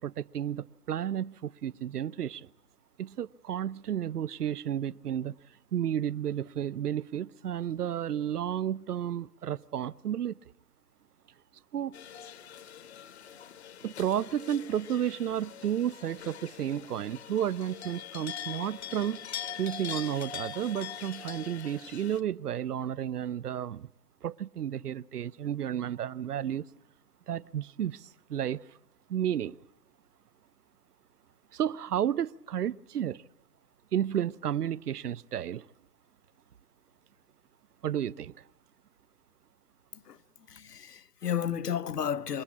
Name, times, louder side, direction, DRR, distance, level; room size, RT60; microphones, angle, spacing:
voice 1, 0.0-2.5 3.0-5.3 5.7-10.4 11.7-12.0 13.8-19.2 19.5-23.9 24.2-26.6 27.3-28.6 29.1-29.6 31.5-33.2 33.9-35.7 37.8-38.4, right 10 dB, 75° right, 0.7 m, -32 dB
sound 1, 11.9-22.2, left 9 dB, 45° left, 1.0 m, -43 dB
voice 2, 40.5-42.4, left 9 dB, 80° left, 1.0 m, -32 dB
26.5 x 13.5 x 8.5 m
hypercardioid pair, 150°, 47 cm